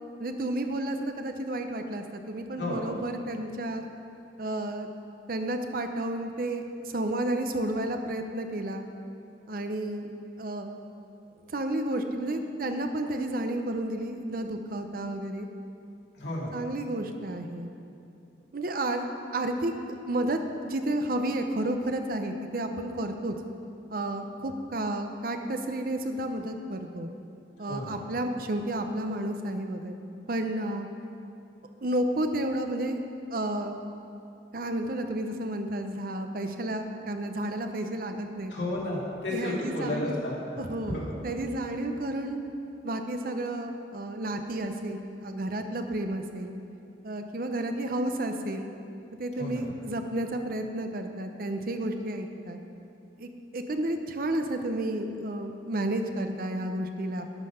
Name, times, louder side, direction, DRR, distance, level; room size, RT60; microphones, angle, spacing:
voice 1, 0.2-3.8 4.4-4.9 5.3-8.9 9.5-10.1 10.4-10.8 11.5-15.5 16.5-17.7 18.5-19.1 19.3-19.7 20.0-23.3 23.9-27.1 27.6-30.0 30.3-30.9 31.8-33.0 33.3-33.8 34.5-38.5 39.3-40.2 40.6-42.4 42.8-46.5 47.0-48.7 49.2-52.6 53.2-57.2, right 1 dB, 55° right, 6 dB, 0.7 m, -31 dB
voice 2, 16.1-16.5 27.6-28.0 38.5-40.3 40.9-41.0 49.4-49.6, left 1 dB, 85° left, -5 dB, 2.4 m, -32 dB
12.0 x 5.6 x 5.6 m, 2.7 s
head